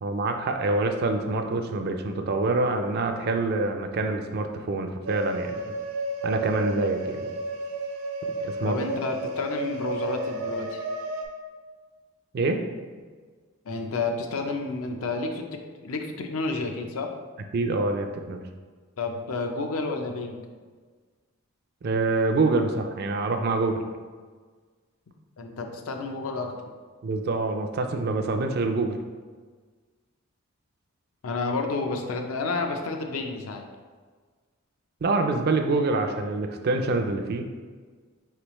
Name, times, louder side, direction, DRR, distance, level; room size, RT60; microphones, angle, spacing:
voice 1, 0.0-5.6 6.2-7.4 8.4-8.8 12.3-12.6 17.5-18.5 21.8-23.8 27.0-29.0 35.0-37.5, right 3 dB, 45° right, 5 dB, 0.3 m, -26 dB
sound 1, 5.1-11.3, right 2 dB, 80° right, 0.7 m, -32 dB
voice 2, 8.6-10.8 13.6-15.5 15.8-17.1 19.0-20.4 25.4-26.6 31.2-33.7, left 3 dB, 80° left, 4 dB, 0.5 m, -30 dB
4.6 x 3.3 x 3.0 m, 1.5 s
head